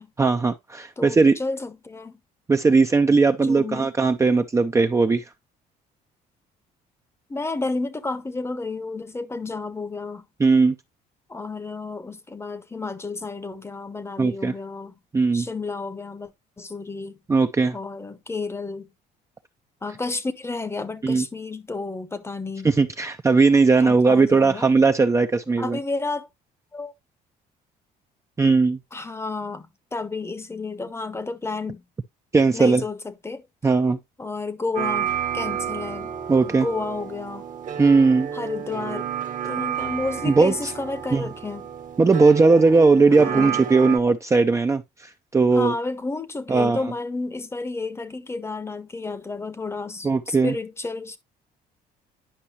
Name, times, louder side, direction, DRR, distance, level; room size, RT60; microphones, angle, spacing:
voice 1, 0.2-1.4 2.5-5.2 10.4-10.7 14.2-14.5 15.1-15.5 17.3-17.8 21.0-21.2 22.6-25.8 28.4-28.8 32.3-32.8 33.6-34.0 36.3-36.7 37.8-38.3 40.2-40.7 41.1-41.2 42.0-45.7 46.5-46.8 50.0-50.5, right 4 dB, 15° right, 0.5 m, -18 dB
voice 2, 1.0-2.2 3.4-3.9 7.3-10.2 11.3-14.9 15.3-16.3 16.6-17.2 17.7-18.9 19.8-22.7 23.8-24.7 25.5-26.3 26.7-26.9 28.9-31.8 32.5-33.4 34.2-36.1 36.4-37.4 38.3-39.1 39.5-41.7 43.2-43.6 45.5-51.2, left 3 dB, 15° left, 0.8 m, -31 dB
sound 1, 34.7-44.0, right 8 dB, 50° right, 1.1 m, -30 dB
10.0 x 5.4 x 2.8 m
cardioid pair, 110°, 17 cm